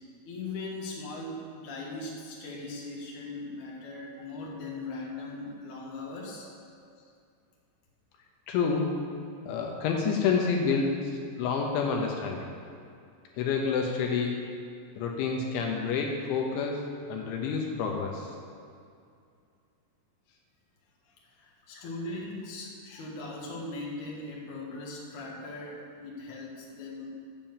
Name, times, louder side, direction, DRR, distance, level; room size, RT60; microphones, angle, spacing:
voice 1, 0.2-6.5 21.4-27.1, left 2 dB, 55° left, -3 dB, 2.4 m, -39 dB
voice 2, 8.5-9.0 9.5-11.1 11.4-12.5 13.4-14.4 15.0-18.3, left 5 dB, 80° left, 1 dB, 3.2 m, -28 dB
8.7 x 7.6 x 7.2 m, 2.4 s
omnidirectional pair, 5.6 m